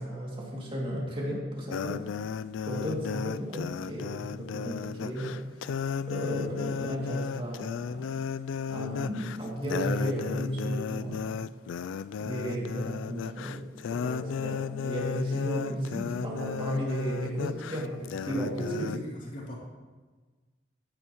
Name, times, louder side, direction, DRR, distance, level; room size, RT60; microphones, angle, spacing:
voice 1, 0.0-2.0 2.7-5.4 6.1-8.2 8.7-11.3 12.2-13.6 13.9-18.9, equal, 25° right, -3 dB, 2.4 m, -34 dB
sound 1, 1.7-19.0, left 7 dB, 80° left, 0.3 m, -34 dB
voice 2, 18.6-19.5, right 1 dB, 45° left, -4 dB, 3.0 m, -37 dB
13.5 x 9.7 x 3.0 m, 1.3 s
head